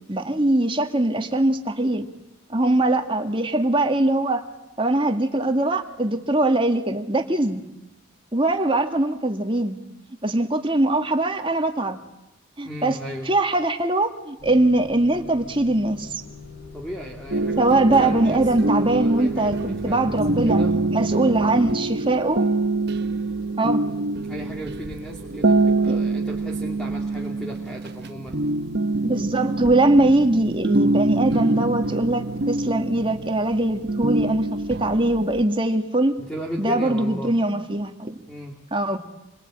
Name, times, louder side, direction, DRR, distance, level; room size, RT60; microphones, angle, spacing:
voice 1, 0.1-2.1 2.5-4.4 4.8-7.6 8.3-9.8 10.2-12.0 12.6-13.0 13.3-16.2 17.6-20.6 20.9-22.4 23.6-23.8 25.9-26.0 29.0-36.2 36.6-38.1 38.7-39.0, right 2 dB, 25° right, 5 dB, 1.9 m, -21 dB
voice 2, 12.6-13.3 16.7-17.7 18.0-20.7 24.3-28.4 36.2-37.3 38.3-38.5, equal, 5° left, 0 dB, 2.4 m, -35 dB
Motor vehicle (road) / Engine starting / Idling, 14.4-20.2, left 3 dB, 50° left, 6.3 m, -42 dB
sound 1, 17.3-35.4, right 2 dB, 50° right, 1.0 m, -25 dB
28.0 x 23.0 x 9.0 m, 0.93 s
head